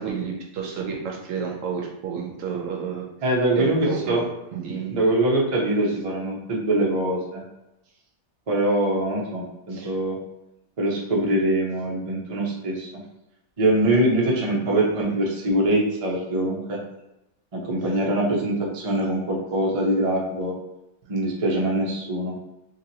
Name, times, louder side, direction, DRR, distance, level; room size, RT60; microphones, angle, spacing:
voice 1, 0.0-3.1 3.6-4.2 4.5-5.0 9.7-9.9 14.6-15.2 21.1-21.2, right 6 dB, 70° right, -1 dB, 0.9 m, -31 dB
voice 2, 3.2-4.2 4.9-7.4 8.5-10.2 10.8-12.9 13.6-16.8 17.5-20.5 21.1-22.3, right 1 dB, 40° right, -3 dB, 0.5 m, -23 dB
2.9 x 2.9 x 2.7 m, 0.91 s
omnidirectional pair, 1.5 m